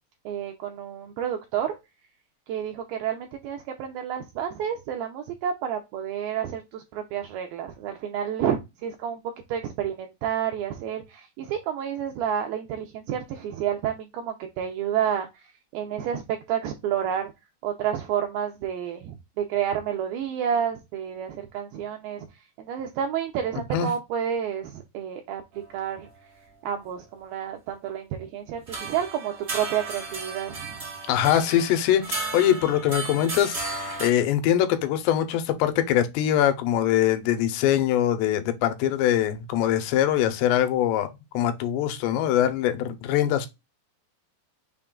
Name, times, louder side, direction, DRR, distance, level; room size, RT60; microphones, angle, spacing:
voice 1, 0.3-1.8 2.5-9.2 9.5-16.2 16.5-17.3 17.6-22.3 22.6-25.4 25.7-26.1 26.6-30.8, right 9 dB, 85° right, 2.1 m, -30 dB
sound 1, 28.7-34.1, right 3 dB, 55° right, 0.7 m, -34 dB
voice 2, 31.1-41.1 41.3-43.5, left 11 dB, 85° left, 2.9 m, -23 dB
6.3 x 2.3 x 3.6 m
omnidirectional pair, 4.9 m